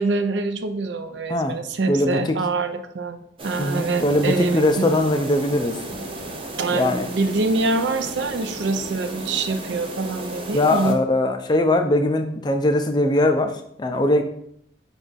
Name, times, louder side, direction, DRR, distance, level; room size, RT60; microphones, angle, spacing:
voice 1, 0.0-4.9 6.6-11.0, right 3 dB, 80° right, 8 dB, 0.4 m, -25 dB
voice 2, 1.9-2.3 3.6-5.8 6.7-7.1 10.5-13.5 13.8-14.2, left 1 dB, 25° left, 6 dB, 0.3 m, -20 dB
sound 1, 3.4-10.9, right 1 dB, 30° right, 0.5 m, -34 dB
5.3 x 2.4 x 3.9 m, 0.70 s
head